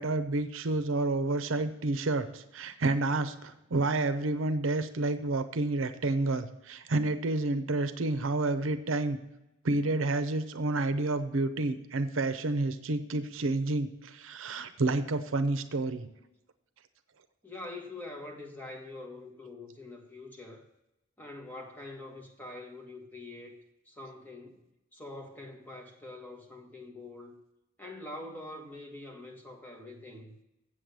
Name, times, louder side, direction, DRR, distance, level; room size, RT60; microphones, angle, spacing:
voice 1, 0.0-9.2 9.6-16.1, right 2 dB, 80° right, 11 dB, 0.7 m, -29 dB
voice 2, 17.4-20.7 21.2-23.6 23.8-24.6 24.9-27.3 27.8-30.3, left 2 dB, 10° left, 1 dB, 1.5 m, -44 dB
7.8 x 7.7 x 6.7 m, 0.91 s
head